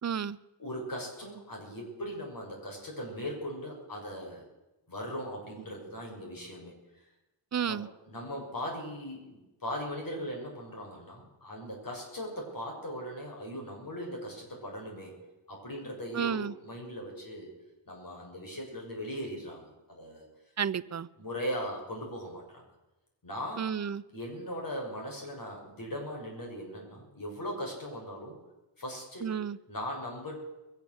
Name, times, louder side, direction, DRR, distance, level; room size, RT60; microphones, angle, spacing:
voice 1, 0.0-0.4 7.5-7.9 16.1-16.5 20.6-21.1 23.6-24.0 29.2-29.6, right 7 dB, 40° right, 18 dB, 0.6 m, -31 dB
voice 2, 0.6-4.4 4.9-6.7 7.6-15.1 15.5-17.5 17.8-20.3 21.2-22.6 23.2-23.6 24.1-28.4 28.8-29.3 29.7-30.4, equal, 45° left, -1 dB, 6.6 m, -39 dB
22.0 x 7.5 x 7.9 m, 1.0 s
cardioid pair, 65°, 45 cm